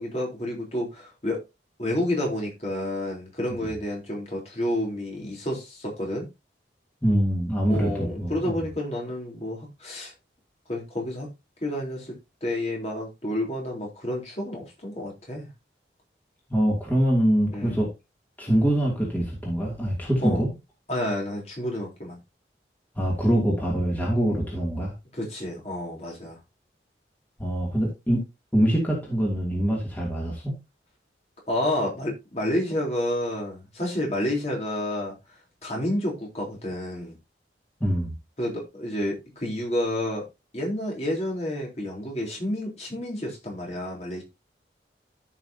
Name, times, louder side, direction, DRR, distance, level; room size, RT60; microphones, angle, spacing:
voice 1, 0.0-1.4 1.8-6.3 7.7-10.1 10.7-11.3 11.6-12.2 12.4-15.5 17.5-17.8 20.2-20.4 20.9-22.2 25.1-26.4 31.5-35.1 35.6-37.1 38.4-40.2 40.5-44.2, left 1 dB, 35° left, 3.7 m, -30 dB
voice 2, 7.0-8.6 16.5-17.9 18.4-20.5 22.9-24.9 27.4-28.2 28.5-30.5 37.8-38.1, equal, 10° left, 2.6 m, -24 dB
14.0 x 6.1 x 2.8 m
head